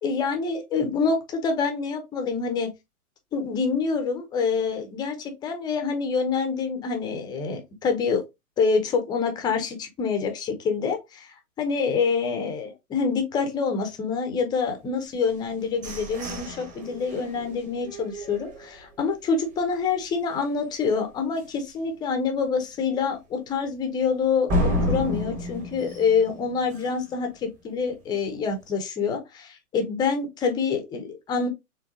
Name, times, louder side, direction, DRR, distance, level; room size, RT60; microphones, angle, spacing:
voice 1, 0.0-2.7 3.3-8.2 8.6-31.5, left 5 dB, 10° left, 0.6 m, -26 dB
sound 1, 15.2-19.1 19.5-19.6 20.0-20.4 20.8-20.9 21.4-21.5 24.5-27.2, equal, 15° right, 1.1 m, -31 dB
4.8 x 3.4 x 2.7 m
figure-of-eight pair, 120°, 44 cm